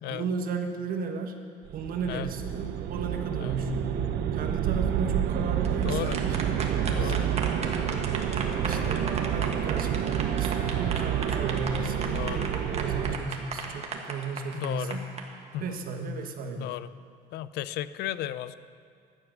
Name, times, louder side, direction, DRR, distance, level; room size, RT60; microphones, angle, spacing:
voice 1, 0.1-1.3 1.7-4.0 4.3-7.3 8.0-15.0 15.6-16.7, right 4 dB, 60° right, 4 dB, 1.3 m, -34 dB
sound 1, 1.7-13.2, right 10 dB, 75° right, 0.7 m, -29 dB
sound 2, 5.5-15.2, right 5 dB, 40° right, 1.5 m, -36 dB
voice 2, 5.8-6.2 6.9-7.3 8.7-9.0 12.0-12.5 14.5-15.0 15.5-15.6 16.6-16.9 17.3-18.5, left 13 dB, 75° left, 15 dB, 0.4 m, -34 dB
Wind instrument woodwind instrument, 6.8-13.6, equal, ahead, 3.7 m, -45 dB
11.5 x 9.2 x 6.2 m, 2.2 s
cardioid pair, 110°, 17 cm